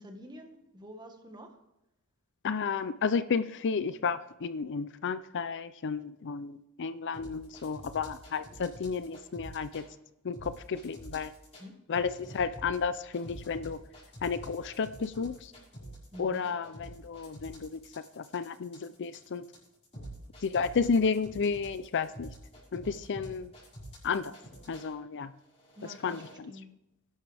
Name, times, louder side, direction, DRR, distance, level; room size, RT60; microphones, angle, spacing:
voice 1, 0.0-1.5 11.6-11.7 16.1-16.5 25.8-26.7, equal, 20° right, 4 dB, 1.7 m, -48 dB
voice 2, 2.4-9.8 10.2-11.3 11.9-13.8 14.2-15.5 16.2-17.8 18.2-19.4 20.4-22.3 22.7-23.5 24.0-24.3 24.7-25.3 26.0-26.5, left 5 dB, 55° left, 13 dB, 0.5 m, -32 dB
sound 1, 7.1-9.9 10.3-11.6 11.9-24.9 25.5-26.3, equal, 30° left, 5.3 m, -47 dB
20.0 x 11.0 x 3.5 m, 0.87 s
head